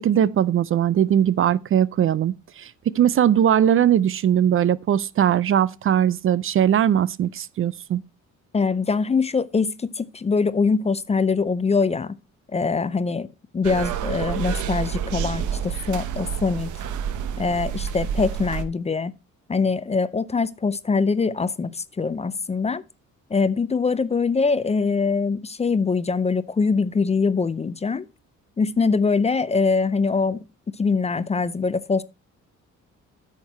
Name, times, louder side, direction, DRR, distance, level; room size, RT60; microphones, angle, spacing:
voice 1, 0.0-8.0, right 10 dB, 45° right, 0.4 m, -20 dB
voice 2, 8.5-12.1 12.5-13.3 13.5-16.7 17.4-19.1 19.5-22.8 23.3-28.1 28.6-30.4 30.8-32.0, left 4 dB, 20° left, 0.4 m, -23 dB
sound 1, 13.6-18.6, right 8 dB, 80° right, 0.9 m, -28 dB
8.9 x 5.9 x 4.2 m
cardioid pair, 90°, 30 cm